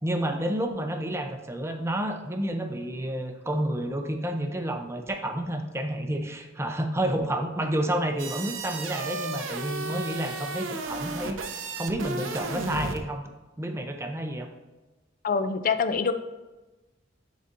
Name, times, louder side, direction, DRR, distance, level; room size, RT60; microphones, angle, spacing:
voice 1, 0.0-11.4 11.8-13.3 13.6-14.5, right 1 dB, 15° right, 5 dB, 0.6 m, -30 dB
sound 1, 8.2-13.0, right 3 dB, 85° right, 0.7 m, -34 dB
voice 2, 15.2-16.1, left 5 dB, 45° left, 11 dB, 0.4 m, -25 dB
9.7 x 4.1 x 2.6 m, 1.1 s
head